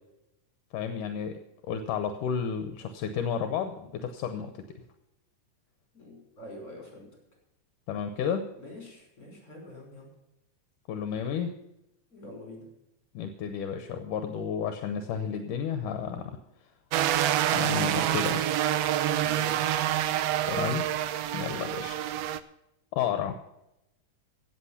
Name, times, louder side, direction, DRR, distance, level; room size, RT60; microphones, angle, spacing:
voice 1, 0.7-1.4 1.7-4.6 7.9-8.4 10.9-11.5 13.1-16.3 17.5-18.5 20.5-20.8 21.3-21.9 22.9-23.3, left 7 dB, 75° left, 7 dB, 2.4 m, -31 dB
voice 2, 5.9-7.1 8.6-10.1 12.1-12.7 19.1-19.7 21.5-21.6, left 2 dB, 25° left, 1 dB, 5.8 m, -46 dB
sound 1, 16.9-22.4, right 12 dB, 90° right, 1.4 m, -27 dB
16.5 x 8.2 x 5.8 m, 0.88 s
omnidirectional pair, 3.8 m